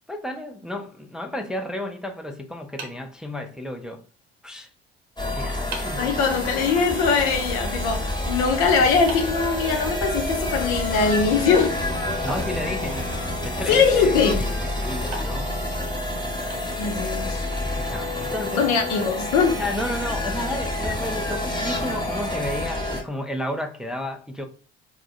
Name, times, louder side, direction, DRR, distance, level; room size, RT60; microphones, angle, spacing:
voice 1, 0.1-4.0 4.4-4.7 5.3-6.1 12.2-13.1 13.4-15.6 17.6-18.6 19.6-24.5, left 1 dB, ahead, 0.5 m, -32 dB
sound 1, 2.8-3.9 5.1-5.2 5.7-6.1 9.1-10.3 12.3-13.4 15.1-17.2, right 3 dB, 85° right, 0.7 m, -41 dB
sound 2, 5.2-23.0, left 1 dB, 15° left, 1.2 m, -28 dB
voice 2, 5.9-11.7 13.7-14.5 16.8-17.4 18.5-19.6, left 5 dB, 65° left, 0.8 m, -21 dB
4.5 x 2.1 x 2.5 m
hypercardioid pair, 55°, 31 cm